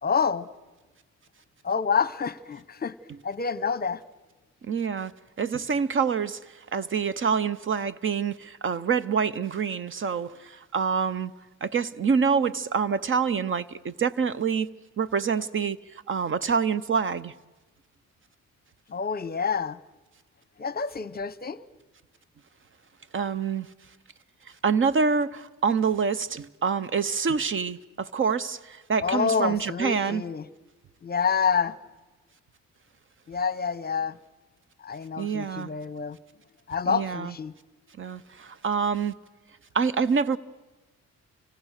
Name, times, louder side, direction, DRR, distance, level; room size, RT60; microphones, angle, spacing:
voice 1, 0.0-0.5 1.6-2.9 3.2-4.0 18.9-19.8 20.6-21.6 29.0-30.4 31.0-31.8 33.3-34.2 34.8-36.2 36.7-37.5, left 6 dB, 30° left, 0.9 m, -27 dB
voice 2, 4.6-5.1 5.4-6.4 6.7-11.3 11.6-14.7 15.0-15.8 16.1-17.3 23.1-23.7 24.6-30.2 35.2-35.7 36.9-37.3 38.0-39.2 39.7-40.4, right 6 dB, 45° right, 0.8 m, -26 dB
30.0 x 25.0 x 6.6 m
cardioid pair, 90°, 30 cm